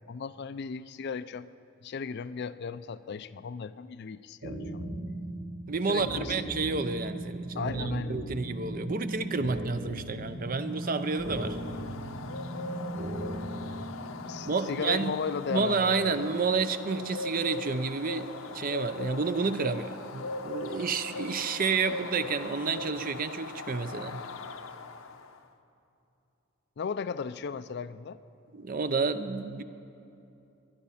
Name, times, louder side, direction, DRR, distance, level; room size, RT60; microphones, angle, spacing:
voice 1, 0.0-1.5 1.8-4.8 5.9-6.4 7.6-8.2 14.3-16.1 26.8-28.2, left 5 dB, 55° left, 14 dB, 0.4 m, -36 dB
sound 1, 4.4-14.4, right 1 dB, 80° right, 1.9 m, -37 dB
voice 2, 5.7-11.6 14.4-15.1 15.5-24.2 28.5-29.6, right 4 dB, 45° right, 11 dB, 0.6 m, -30 dB
Bird, 10.7-25.4, left 3 dB, 80° left, 0.8 m, -40 dB
20.5 x 11.5 x 5.7 m, 2.7 s
head